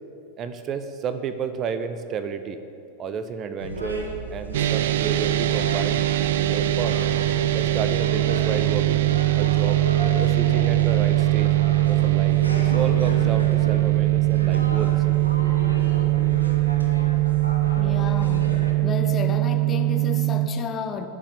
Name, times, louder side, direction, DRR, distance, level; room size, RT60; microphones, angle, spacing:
voice 1, 0.4-2.6 3.0-6.0 6.4-7.0 7.5-9.8 10.2-11.5 11.9-14.9, right 6 dB, 30° right, 11 dB, 0.9 m, -31 dB
sound 1, 3.6-18.7, right 1 dB, 80° right, 2.5 m, -33 dB
sound 2, 4.5-20.5, right 18 dB, 55° right, 0.5 m, -21 dB
voice 2, 17.8-18.5 18.8-21.1, left 5 dB, 25° left, 6 dB, 1.3 m, -31 dB
20.0 x 7.3 x 9.2 m, 2.7 s
figure-of-eight pair, 90°, 0 cm